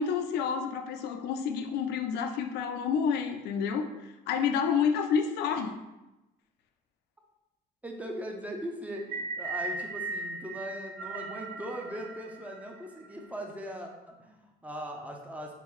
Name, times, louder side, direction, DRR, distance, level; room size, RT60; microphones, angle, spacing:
voice 1, 0.0-5.7, left 6 dB, 80° left, 5 dB, 0.4 m, -29 dB
voice 2, 7.8-15.5, equal, 10° right, 1 dB, 0.5 m, -40 dB
sound 1, 9.0-13.3, right 3 dB, 80° right, 0.5 m, -38 dB
3.7 x 2.6 x 3.1 m, 1.0 s
cardioid pair, 110°, 17 cm